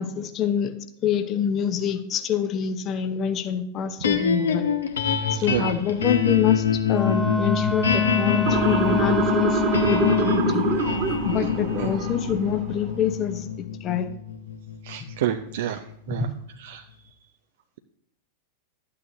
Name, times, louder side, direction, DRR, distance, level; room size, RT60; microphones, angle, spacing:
voice 1, 0.0-4.7 5.3-10.7 11.3-14.1 16.1-16.3, left 8 dB, 30° left, 10 dB, 0.8 m, -26 dB
sound 1, 4.0-16.3, left 7 dB, 65° left, 1.0 m, -26 dB
voice 2, 5.2-5.7 11.8-11.9 14.8-15.8 16.1-16.3 16.6-16.8, right 12 dB, 55° right, 7 dB, 0.5 m, -29 dB
Wind instrument woodwind instrument, 6.9-10.5, left 2 dB, 5° left, 0.5 m, -27 dB
Motor vehicle (road) / Siren, 8.5-12.6, right 2 dB, 40° right, 1.4 m, -25 dB
12.0 x 8.6 x 2.6 m, 0.74 s
figure-of-eight pair, 90°, 0 cm